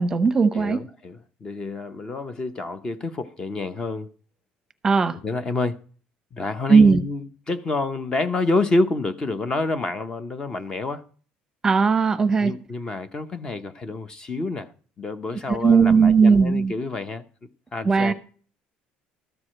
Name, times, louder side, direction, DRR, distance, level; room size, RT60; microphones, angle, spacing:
voice 1, 0.0-0.8 4.8-5.1 6.7-7.0 11.6-12.5 15.5-16.7 17.8-18.1, right 5 dB, 20° right, 0.8 m, -17 dB
voice 2, 0.5-4.1 5.2-5.8 6.3-11.1 12.4-14.7 15.0-17.2 17.7-18.1, left 2 dB, 20° left, 0.7 m, -28 dB
13.0 x 4.8 x 7.4 m
cardioid pair, 165°, 3 cm